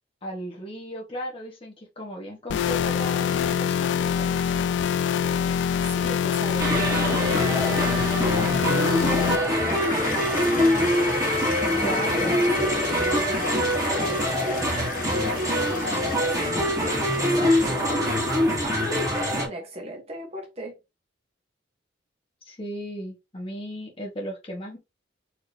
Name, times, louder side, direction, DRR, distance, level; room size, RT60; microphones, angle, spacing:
voice 1, 0.2-4.6 11.8-12.3 22.4-24.8, equal, 30° left, 1.3 m, -35 dB
sound 1, 2.5-9.4, left 8 dB, 85° left, 0.3 m, -24 dB
voice 2, 5.8-11.0 11.5-16.6 17.2-18.1 19.1-20.8, right 1 dB, 35° right, 1.1 m, -38 dB
sound 2, 6.6-19.5, equal, 20° right, 1.3 m, -24 dB
Toilet flush, 8.9-18.1, left 5 dB, 50° left, 0.7 m, -36 dB
4.3 x 2.9 x 3.3 m
head